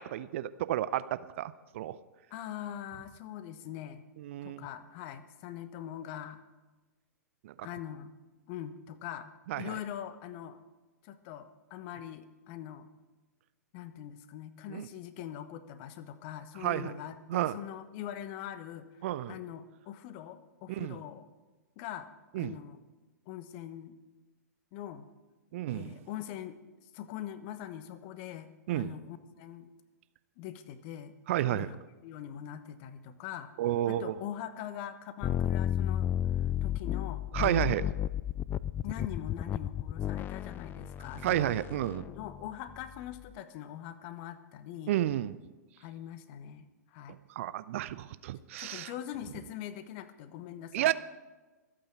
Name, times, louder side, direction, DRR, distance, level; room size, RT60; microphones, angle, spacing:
voice 1, 0.0-2.0 4.2-4.6 7.4-7.7 9.5-9.8 14.7-14.9 16.6-16.9 17.3-17.6 19.0-19.4 20.7-21.0 22.3-22.5 25.5-26.0 28.7-28.9 31.3-31.7 33.6-34.1 37.3-37.8 41.2-42.1 44.9-45.4 47.1-48.9 50.7-50.9, right 13 dB, 50° right, 16 dB, 0.6 m, -31 dB
voice 2, 2.3-4.0 4.4-6.4 7.6-8.1 8.5-10.6 11.0-12.9 13.7-21.3 21.8-22.8 23.3-24.0 24.7-25.1 25.7-29.7 30.4-31.1 31.5-31.8 32.0-33.5 33.9-36.1 36.6-37.8 38.8-41.5 42.1-44.9 45.8-47.2 48.6-50.9, left 11 dB, 40° left, 12 dB, 1.1 m, -42 dB
sound 1, 35.2-43.2, left 11 dB, 20° left, 0.4 m, -33 dB
25.0 x 8.8 x 4.6 m, 1.2 s
figure-of-eight pair, 110°, 9 cm